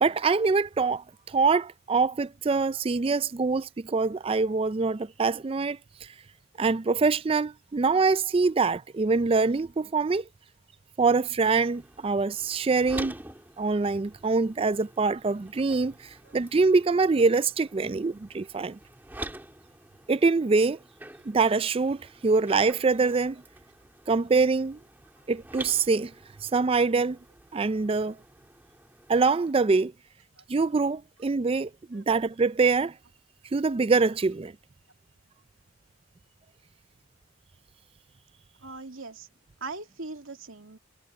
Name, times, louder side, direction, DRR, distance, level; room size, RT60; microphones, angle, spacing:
voice 1, 0.0-6.1 6.6-10.2 11.0-13.1 13.6-18.8 20.1-20.8 21.2-23.4 24.1-24.8 25.3-26.1 26.4-27.2 27.5-28.2 29.1-29.9 30.5-33.0 33.5-34.5, right 4 dB, 25° right, 0.3 m, -24 dB
sound 1, 11.4-29.5, right 1 dB, 10° right, 1.9 m, -47 dB
voice 2, 38.6-39.3 39.6-40.8, right 3 dB, 70° right, 2.6 m, -40 dB
head